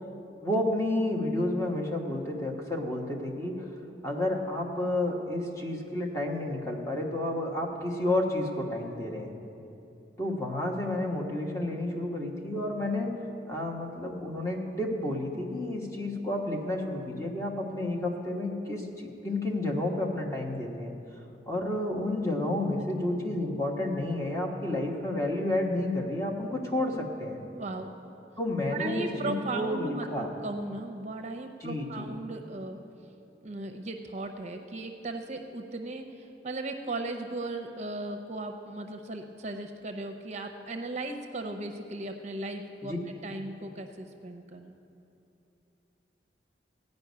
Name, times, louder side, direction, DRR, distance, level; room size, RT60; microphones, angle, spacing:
voice 1, 0.4-3.7 4.0-9.3 10.2-13.1 13.5-20.9 21.5-27.4 28.4-30.3 31.6-32.1 42.8-43.0, left 1 dB, 20° left, 0 dB, 1.3 m, -31 dB
voice 2, 27.5-27.9 28.7-32.8 33.4-44.8, right 2 dB, 40° right, 5 dB, 0.7 m, -37 dB
16.0 x 5.3 x 9.4 m, 2.9 s
head